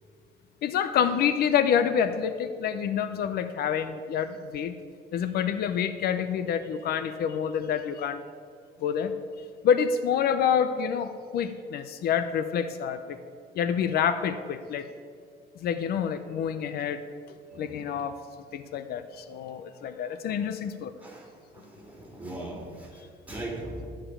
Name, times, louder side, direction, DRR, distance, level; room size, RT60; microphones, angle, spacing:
voice 1, 0.6-4.8 5.1-8.2 8.8-9.1 9.6-13.2 13.5-14.9 15.6-17.0 17.6-18.2 18.5-20.9, left 8 dB, 65° left, 11 dB, 0.6 m, -27 dB
voice 2, 17.5-17.9 21.0-23.9, right 1 dB, 10° right, -1 dB, 3.4 m, -40 dB
13.5 x 5.0 x 8.8 m, 2.1 s
cardioid pair, 110°, 17 cm